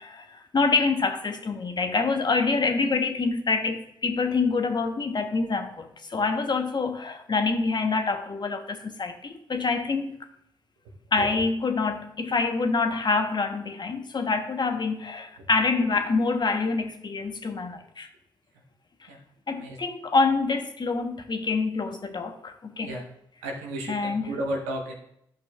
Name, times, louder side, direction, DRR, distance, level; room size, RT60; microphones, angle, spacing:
voice 1, 0.0-10.1 11.1-18.1 19.5-22.9 23.9-24.3, left 4 dB, 40° left, 1.0 m, -26 dB
voice 2, 23.4-25.0, right 1 dB, 85° right, 1.2 m, -33 dB
11.5 x 5.2 x 2.4 m
hypercardioid pair, 40°, 11 cm